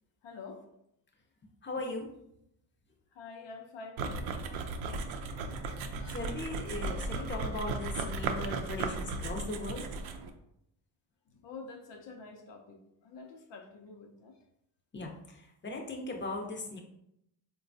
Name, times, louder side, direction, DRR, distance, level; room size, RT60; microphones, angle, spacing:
voice 1, 0.2-0.6 3.1-4.3 6.0-6.2 11.3-14.4, left 4 dB, 65° left, 4 dB, 0.7 m, -48 dB
voice 2, 1.6-2.1 5.0-5.2 6.1-9.9 14.9-16.8, left 2 dB, 25° left, 1 dB, 0.7 m, -38 dB
sound 1, 4.0-10.3, right 3 dB, 80° right, 0.5 m, -36 dB
3.8 x 2.3 x 2.6 m, 0.78 s
cardioid pair, 75°, 47 cm